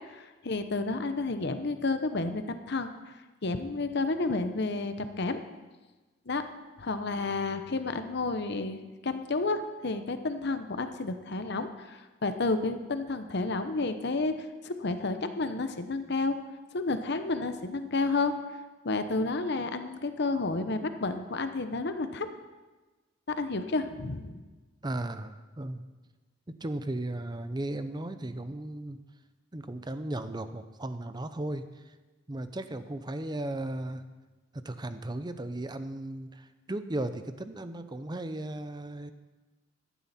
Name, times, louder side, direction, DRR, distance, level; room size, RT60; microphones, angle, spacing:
voice 1, 0.1-2.9 3.4-5.4 6.3-6.4 6.8-16.4 16.7-18.3 18.8-22.3 23.3-24.4, left 3 dB, 60° left, 9 dB, 0.9 m, -31 dB
voice 2, 24.8-25.8 26.6-29.0 29.5-31.7 32.3-34.0 34.5-39.1, right 1 dB, 20° right, 10 dB, 0.7 m, -36 dB
15.0 x 11.0 x 4.3 m, 1.2 s
head